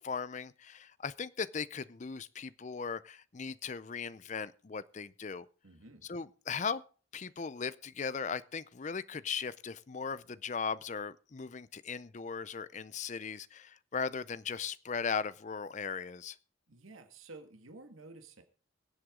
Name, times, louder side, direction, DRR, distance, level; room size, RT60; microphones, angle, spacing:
voice 1, 0.0-5.5 6.1-6.8 7.1-16.4, left 5 dB, 35° left, 0.5 m, -38 dB
voice 2, 5.6-6.1 16.7-18.4, right 3 dB, 85° right, 1.8 m, -52 dB
23.5 x 7.8 x 3.7 m
head